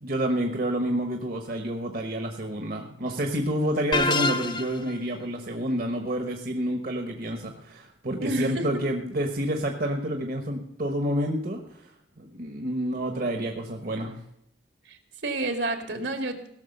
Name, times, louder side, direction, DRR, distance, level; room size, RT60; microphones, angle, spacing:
voice 1, 0.0-11.6 12.2-14.2, right 1 dB, 50° right, 4 dB, 1.2 m, -29 dB
sound 1, 3.9-5.0, left 2 dB, 25° left, 0.7 m, -26 dB
voice 2, 8.2-8.8 14.9-16.5, right 2 dB, 75° right, 6 dB, 2.0 m, -30 dB
17.0 x 6.5 x 6.6 m, 0.74 s
head